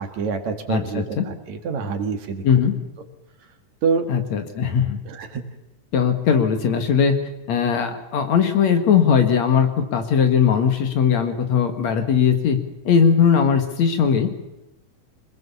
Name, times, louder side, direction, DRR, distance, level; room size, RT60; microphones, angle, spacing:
voice 1, 0.0-2.4 3.8-4.1 5.1-5.4, right 5 dB, 65° right, 6 dB, 3.1 m, -26 dB
voice 2, 0.7-1.3 2.4-2.8 4.1-5.0 5.9-7.2 7.5-12.6 12.8-14.3, left 7 dB, 60° left, 7 dB, 3.0 m, -19 dB
25.5 x 20.0 x 7.2 m, 0.92 s
omnidirectional pair, 3.6 m